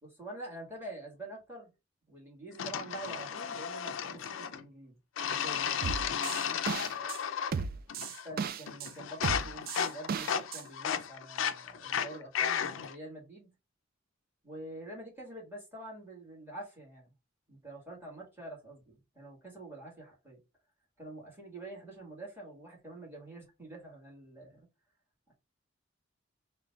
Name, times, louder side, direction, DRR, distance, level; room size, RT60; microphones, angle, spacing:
voice 1, 0.0-1.7 2.1-7.0 8.2-13.5 14.4-17.1 17.5-20.4 21.0-24.7 25.3-25.4, right 1 dB, 10° right, 1.9 m, -47 dB
sound 1, 2.6-4.6 5.2-7.6 7.9-8.4 8.7-13.0, left 8 dB, 80° left, 0.4 m, -34 dB
sound 2, 5.8-7.2 7.5-8.9 9.2-10.6, right 5 dB, 50° right, 0.4 m, -35 dB
3.7 x 2.3 x 4.1 m
head